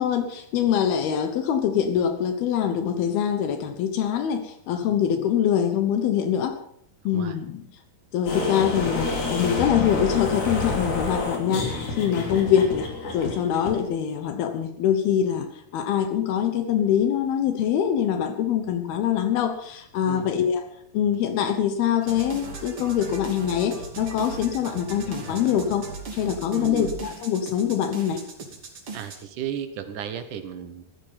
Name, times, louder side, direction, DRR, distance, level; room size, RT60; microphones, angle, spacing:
voice 1, 0.0-6.6 7.0-7.7 8.1-12.9 13.1-15.5 15.7-20.6 20.9-28.2, left 9 dB, 75° left, 8 dB, 3.0 m, -24 dB
sound 1, 8.3-13.7, left 3 dB, 50° left, 4.4 m, -28 dB
sound 2, 22.0-29.2, right 4 dB, 40° right, 3.1 m, -38 dB
voice 2, 26.5-26.9 28.9-30.9, right 9 dB, 65° right, 9 dB, 2.4 m, -34 dB
15.0 x 14.0 x 5.7 m, 0.71 s
omnidirectional pair, 4.5 m